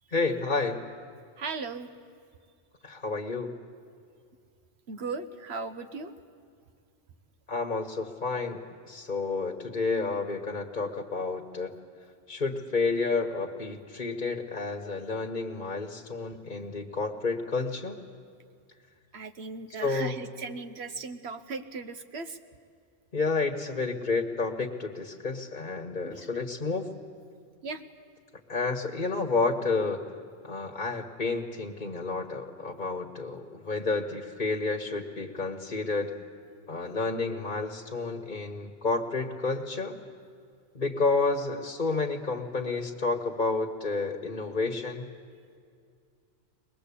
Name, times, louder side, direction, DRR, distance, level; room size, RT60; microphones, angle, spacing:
voice 1, 0.1-0.8 2.8-3.5 7.5-11.7 12.3-18.0 19.8-20.1 23.1-26.9 28.5-30.0 30.4-36.1 36.7-40.0 40.7-45.1, left 3 dB, 40° left, 3 dB, 1.4 m, -30 dB
voice 2, 1.4-1.9 4.9-6.1 19.1-22.4 26.0-26.3 27.6-27.8, right 4 dB, 60° right, 9 dB, 1.3 m, -37 dB
22.5 x 20.5 x 8.4 m, 2.3 s
omnidirectional pair, 1.2 m